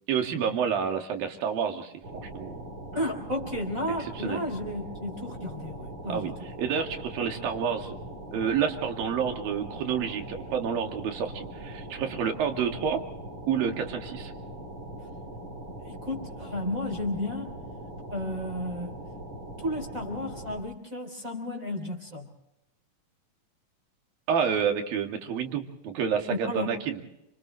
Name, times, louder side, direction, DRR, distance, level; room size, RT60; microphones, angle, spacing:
voice 1, 0.1-2.6 4.0-4.4 6.1-7.9 8.3-13.0 13.5-14.3 24.3-27.0, right 7 dB, 75° right, 3 dB, 4.0 m, -29 dB
sound 1, 2.0-20.6, right 1 dB, 40° right, 3.3 m, -41 dB
voice 2, 2.9-6.3 15.8-17.5 18.1-19.0 19.6-22.3 26.3-26.7, left 1 dB, 20° right, 2 dB, 3.7 m, -33 dB
29.5 x 27.0 x 3.3 m, 0.84 s
omnidirectional pair, 4.2 m